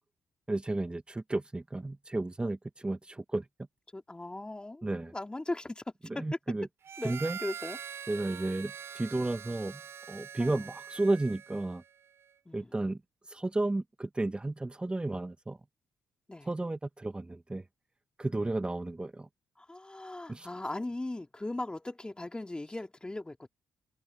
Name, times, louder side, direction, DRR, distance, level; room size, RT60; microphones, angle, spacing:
voice 1, 0.5-3.4 4.8-5.1 6.1-6.7 7.0-7.4 8.1-9.8 10.1-11.8 12.5-13.0 13.3-15.6 16.5-17.6 18.2-19.3 20.3-20.5, right 2 dB, 20° right, 1.6 m, -32 dB
voice 2, 3.9-6.2 7.0-7.8 10.4-10.7 12.4-12.7 16.3-16.5 19.6-23.5, left 2 dB, 20° left, 3.3 m, -39 dB
Harmonica, 6.8-11.9, right 8 dB, 60° right, 7.9 m, -44 dB
hypercardioid pair, 45°, 5 cm